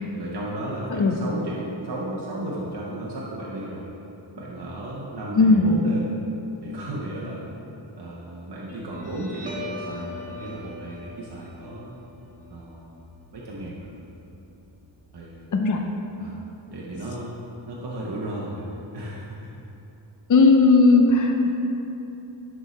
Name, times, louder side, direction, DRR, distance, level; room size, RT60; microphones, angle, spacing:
voice 1, 0.1-3.9 4.4-6.1 6.6-7.4 7.9-12.0 12.5-12.8 13.3-13.9 15.1-15.5 16.2-16.4 16.7-17.4 17.7-18.7 18.9-19.5, right 1 dB, 60° right, -5 dB, 1.0 m, -34 dB
voice 2, 5.4-5.8 15.5-15.8 20.3-21.5, left 3 dB, 40° left, 3 dB, 0.6 m, -17 dB
Guitar, 8.7-15.7, left 1 dB, 15° right, 1.4 m, -41 dB
10.5 x 3.7 x 4.1 m, 3.0 s
wide cardioid pair, 100°, 47 cm